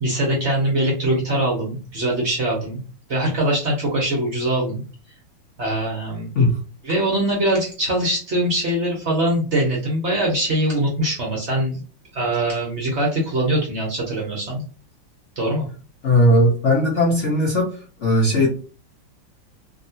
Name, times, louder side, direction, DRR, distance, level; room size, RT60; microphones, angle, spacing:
voice 1, 0.0-2.8 3.1-4.8 5.6-6.3 6.8-11.8 12.1-14.6 15.4-15.6, right 1 dB, 50° right, -2 dB, 0.8 m, -22 dB
voice 2, 16.0-17.7 18.0-18.5, left 1 dB, 70° left, -2 dB, 0.7 m, -17 dB
2.9 x 2.8 x 2.7 m, 0.37 s
omnidirectional pair, 2.2 m